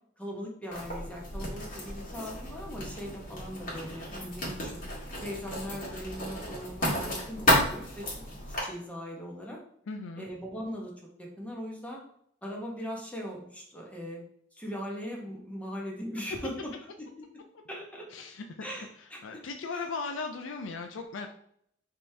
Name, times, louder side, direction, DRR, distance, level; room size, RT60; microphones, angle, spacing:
voice 1, 0.2-4.8 5.2-8.1 8.5-9.6 10.2-10.9 11.2-12.0 12.4-14.2 14.5-16.7 17.7-18.1 18.6-19.4 19.7-19.8, equal, 5° left, -2 dB, 1.0 m, -39 dB
Writing, 0.7-8.6, equal, 45° left, 1.7 m, -32 dB
voice 2, 9.9-10.3 18.1-18.4 19.2-21.3, left 4 dB, 85° left, 4 dB, 0.5 m, -37 dB
5.3 x 2.9 x 3.3 m, 0.67 s
head